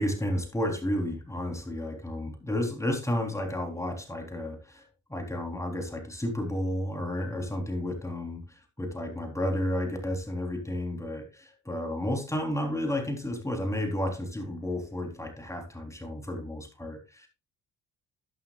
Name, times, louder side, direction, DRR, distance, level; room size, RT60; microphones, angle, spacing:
voice 1, 0.0-4.8 5.1-17.3, left 1 dB, 10° left, 3 dB, 3.6 m, -32 dB
12.0 x 11.0 x 2.4 m, 0.28 s
cardioid pair, 90°, 30 cm